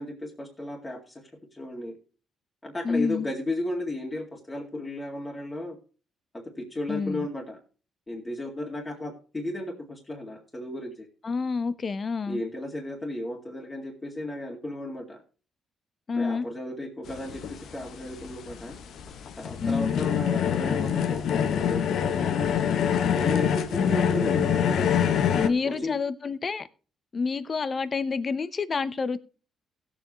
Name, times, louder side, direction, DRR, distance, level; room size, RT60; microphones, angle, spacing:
voice 1, 0.0-2.0 2.6-5.8 6.6-7.6 8.1-11.1 12.3-15.2 16.2-18.8 19.4-22.6 23.1-24.9 25.4-26.0, left 1 dB, 20° left, -1 dB, 2.2 m, -34 dB
voice 2, 2.8-3.3 6.9-7.3 11.2-12.4 16.1-16.5 19.6-19.9 23.8-24.5 25.4-26.7 27.1-29.2, left 4 dB, 40° left, 15 dB, 0.8 m, -28 dB
sound 1, 17.1-25.5, left 8 dB, 70° left, 0.8 m, -25 dB
16.5 x 7.6 x 3.1 m, 0.36 s
cardioid pair, 90°, 0 cm